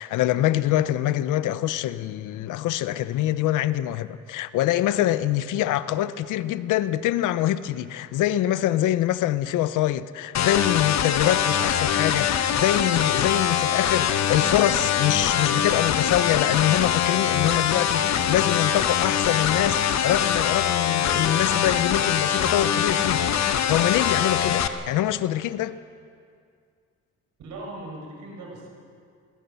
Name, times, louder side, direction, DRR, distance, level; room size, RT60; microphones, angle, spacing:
voice 1, 0.0-23.3 23.7-25.8, left 13 dB, 90° left, 0.7 m, -24 dB
sound 1, 10.3-24.7, left 9 dB, 60° left, 1.2 m, -23 dB
voice 2, 27.4-28.7, right 2 dB, 75° right, 5.9 m, -38 dB
22.5 x 20.0 x 6.9 m
cardioid pair, 90°, 30 cm